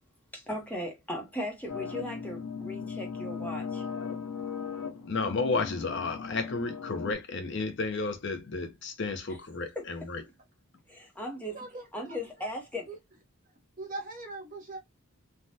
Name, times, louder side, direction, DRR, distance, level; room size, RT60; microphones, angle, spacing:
voice 1, 0.3-3.9 9.3-9.4 9.7-9.9 10.9-12.9, left 1 dB, 5° left, 0.8 m, -38 dB
sound 1, 1.7-7.1, left 6 dB, 85° left, 0.7 m, -38 dB
voice 2, 5.1-10.2, left 3 dB, 50° left, 0.6 m, -32 dB
voice 3, 13.8-14.8, right 2 dB, 35° right, 0.9 m, -40 dB
3.3 x 2.2 x 2.6 m
head